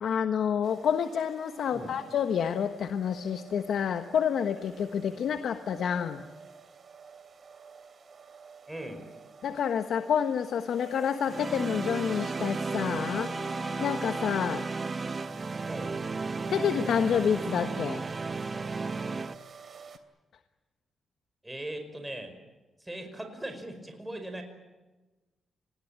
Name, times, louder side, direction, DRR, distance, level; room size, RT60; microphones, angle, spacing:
voice 1, 0.0-6.2 9.4-14.7 16.5-18.1, left 7 dB, 75° left, 8 dB, 1.2 m, -28 dB
sound 1, 0.6-20.0, right 5 dB, 50° right, 2.9 m, -48 dB
voice 2, 8.7-9.0 15.7-16.0 21.4-22.3 22.8-24.4, right 1 dB, 10° right, 6 dB, 5.4 m, -39 dB
sound 2, 11.3-19.4, right 4 dB, 35° right, 0.9 m, -34 dB
sound 3, 13.0-14.6, left 2 dB, 15° left, 3.9 m, -42 dB
26.5 x 20.0 x 8.9 m, 1.2 s
cardioid pair, 80°, 0 cm